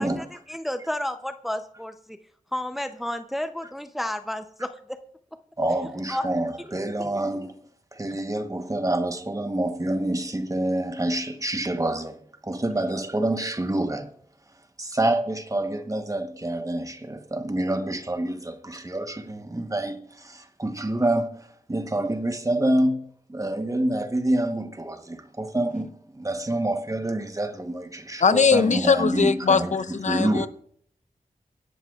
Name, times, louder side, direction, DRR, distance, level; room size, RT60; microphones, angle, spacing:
voice 1, 0.0-2.2 2.5-5.0 6.1-6.3 6.6-6.7, left 1 dB, ahead, 0.6 m, -31 dB
voice 2, 5.6-7.6 7.9-14.1 14.8-29.7 30.1-30.5, right 1 dB, 25° right, 1.1 m, -27 dB
voice 3, 28.2-30.5, left 5 dB, 55° left, 0.5 m, -21 dB
24.5 x 11.0 x 2.4 m
wide cardioid pair, 85°, 14 cm